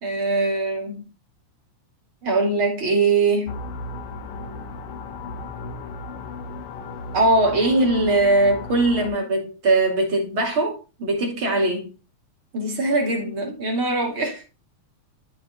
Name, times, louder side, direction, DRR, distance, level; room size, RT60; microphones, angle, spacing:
voice 1, 0.0-1.0 2.2-3.6 7.1-11.9 12.5-14.5, right 2 dB, 45° right, 3.3 m, -21 dB
sound 1, 3.5-9.1, left 3 dB, 65° left, 1.5 m, -35 dB
13.0 x 5.0 x 2.4 m
omnidirectional pair, 3.4 m